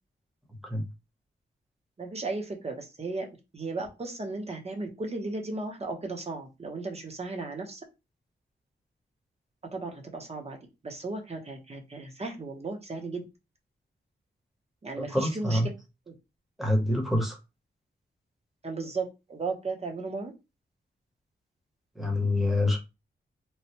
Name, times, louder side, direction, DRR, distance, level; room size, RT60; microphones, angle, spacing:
voice 1, 2.0-7.8 9.7-10.6 10.8-13.2 14.8-15.7 16.1-16.2 18.6-20.3, right 3 dB, 35° right, 0.8 m, -35 dB
voice 2, 15.0-15.7 16.6-17.4 22.0-22.8, left 1 dB, ahead, 0.9 m, -26 dB
3.1 x 2.2 x 2.8 m
wide cardioid pair, 115°, 20 cm